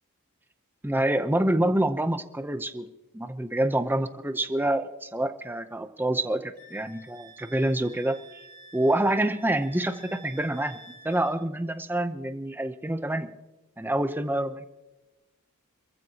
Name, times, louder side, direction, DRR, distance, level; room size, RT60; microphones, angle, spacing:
voice 1, 0.8-2.9 3.1-8.2 8.7-13.3 13.8-14.7, right 1 dB, 10° right, 9 dB, 0.7 m, -27 dB
Wind instrument woodwind instrument, 6.6-11.4, right 2 dB, 40° right, 2.9 m, -50 dB
27.0 x 14.5 x 2.9 m, 1.1 s
head